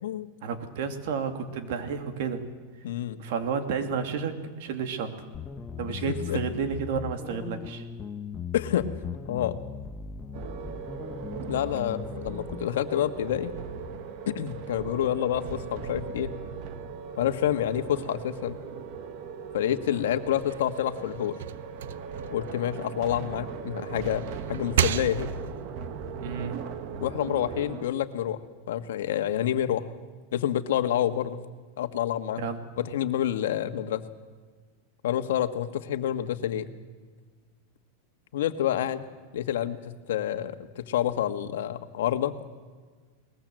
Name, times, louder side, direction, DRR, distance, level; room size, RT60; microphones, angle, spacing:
voice 1, 0.4-2.4 3.2-5.1 5.8-7.8 26.2-26.6 32.4-32.6, right 6 dB, 60° right, 7 dB, 2.8 m, -31 dB
voice 2, 2.8-3.2 6.2-6.4 8.5-8.9 9.3-9.5 11.5-13.5 14.3-16.3 17.2-18.6 19.5-21.4 22.3-25.3 27.0-28.4 28.7-29.8 30.3-31.4 31.8-32.4 32.8-34.0 35.0-36.7 38.3-39.0 39.3-42.3, left 11 dB, 80° left, 9 dB, 1.5 m, -28 dB
sound 1, 5.3-12.7, left 6 dB, 15° left, 1.1 m, -38 dB
sound 2, 10.3-27.8, right 6 dB, 45° right, 1.7 m, -38 dB
sound 3, 20.2-23.4 23.9-25.7, right 10 dB, 85° right, 0.8 m, -33 dB
21.5 x 20.5 x 7.8 m, 1.5 s
supercardioid pair, 155°, 0 cm